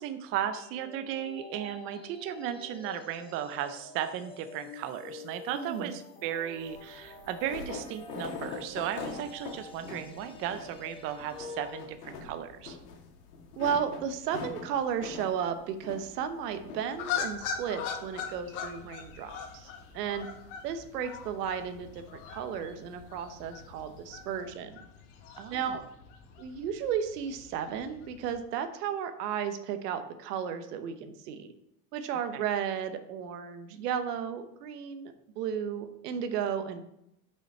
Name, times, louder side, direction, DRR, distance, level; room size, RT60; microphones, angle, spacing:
voice 1, 0.0-12.8 25.4-25.8 32.3-32.4, right 10 dB, 30° right, 9 dB, 0.5 m, -36 dB
sound 1, 0.5-11.8, left 3 dB, 10° left, 0.9 m, -48 dB
voice 2, 5.5-5.9 13.6-20.3 20.6-24.8 25.5-25.8 26.4-31.5 31.9-36.8, right 8 dB, 75° right, 9 dB, 1.0 m, -34 dB
sound 2, 6.6-24.4, left 4 dB, 70° left, 1.9 m, -46 dB
sound 3, 16.9-28.4, left 7 dB, 50° left, 1.4 m, -41 dB
5.9 x 5.6 x 4.2 m, 0.81 s
supercardioid pair, 120°, 49 cm